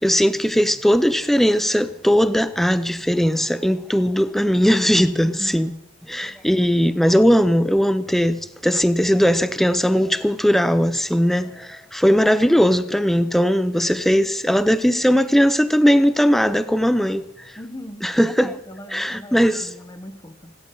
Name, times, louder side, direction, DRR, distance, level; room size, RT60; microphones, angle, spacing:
voice 1, 0.0-5.7 6.1-17.6 18.0-18.5 18.9-19.7, equal, ahead, 0.5 m, -19 dB
voice 2, 5.2-5.7 17.6-20.6, equal, 20° left, 1.1 m, -39 dB
29.0 x 12.5 x 3.9 m
head